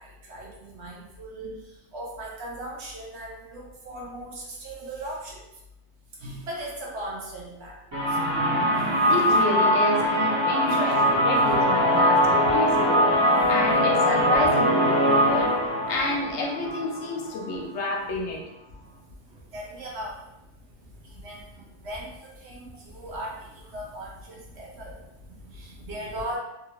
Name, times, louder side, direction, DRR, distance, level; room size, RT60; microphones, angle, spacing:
voice 1, 0.0-5.4 6.2-8.4 11.5-11.6 12.2-14.0 14.3-14.5 15.5-15.9 18.7-18.8 19.1-20.3 21.0-26.4, right 1 dB, 65° right, -3 dB, 1.0 m, -39 dB
sound 1, 7.9-17.6, equal, 25° right, 0.8 m, -22 dB
voice 2, 9.0-15.5 15.9-18.4, left 2 dB, 70° left, 0 dB, 0.9 m, -30 dB
2.8 x 2.4 x 2.9 m, 0.89 s
omnidirectional pair, 1.2 m